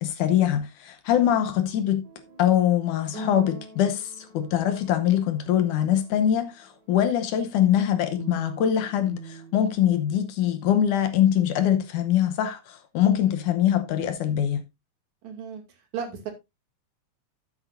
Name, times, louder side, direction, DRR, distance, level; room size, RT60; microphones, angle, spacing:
voice 1, 0.0-2.0 2.4-14.6, left 10 dB, 70° left, 2.3 m, -23 dB
sound 1, 2.0-6.4 8.2-10.3, equal, 40° right, 4.6 m, -42 dB
voice 2, 15.2-16.3, right 7 dB, 60° right, 3.4 m, -35 dB
12.0 x 9.1 x 2.6 m
omnidirectional pair, 3.9 m